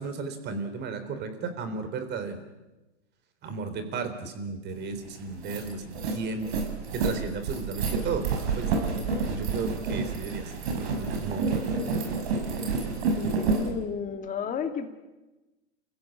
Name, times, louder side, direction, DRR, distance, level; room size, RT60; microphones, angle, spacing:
voice 1, 0.0-2.4 3.4-6.5 6.9-8.3 8.6-8.7 9.3-11.9, right 4 dB, 30° right, 9 dB, 3.9 m, -34 dB
sound 1, 4.8-4.9 5.3-13.7, right 4 dB, 60° right, 6.1 m, -29 dB
voice 2, 13.1-14.9, left 7 dB, 20° left, 6 dB, 2.4 m, -32 dB
29.5 x 16.0 x 8.8 m, 1.1 s
hypercardioid pair, 130°, 36 cm